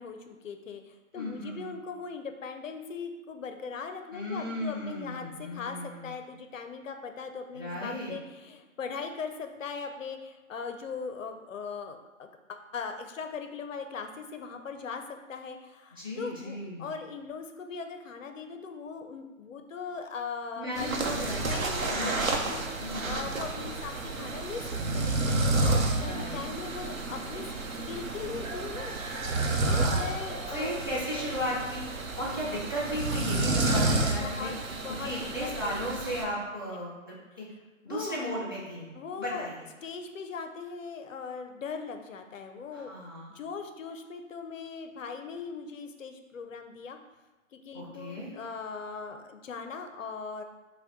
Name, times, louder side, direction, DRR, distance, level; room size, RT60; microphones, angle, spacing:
voice 1, 0.0-20.9 21.4-25.1 25.5-27.5 27.9-28.9 29.6-30.9 34.2-34.6 34.8-35.1 35.4-35.8 37.9-38.2 38.9-39.5 39.8-42.9 43.3-47.0 47.5-50.4, left 5 dB, 70° left, 6 dB, 0.6 m, -39 dB
voice 2, 1.1-1.7 4.1-6.1 7.5-8.1 15.9-16.9 20.6-22.2 22.8-23.3 25.9-26.4 29.7-30.1 30.5-31.9 32.2-34.5 34.9-37.5 37.8-38.9 39.2-39.6 42.7-43.3 47.7-48.3, equal, 20° right, -8 dB, 0.4 m, -35 dB
sound 1, 20.8-36.2, right 2 dB, 85° right, 0.8 m, -30 dB
5.1 x 2.2 x 3.6 m, 1.2 s
figure-of-eight pair, 145°, 40 cm